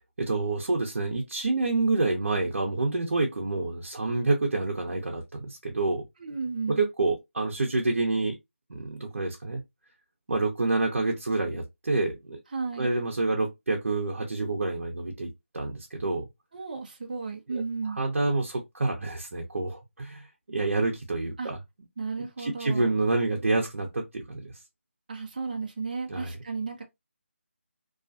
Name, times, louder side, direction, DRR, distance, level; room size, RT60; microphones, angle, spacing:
voice 1, 0.2-6.0 6.7-8.4 8.7-9.6 10.3-12.4 12.8-16.2 17.5-21.6 22.4-24.5 26.1-26.3, right 3 dB, 70° right, 0.7 m, -28 dB
voice 2, 6.2-6.8 12.5-12.9 16.5-18.0 21.4-21.5 22.0-23.0 25.1-26.8, right 4 dB, 35° right, 0.5 m, -34 dB
2.4 x 2.3 x 2.6 m
figure-of-eight pair, 170°, 7 cm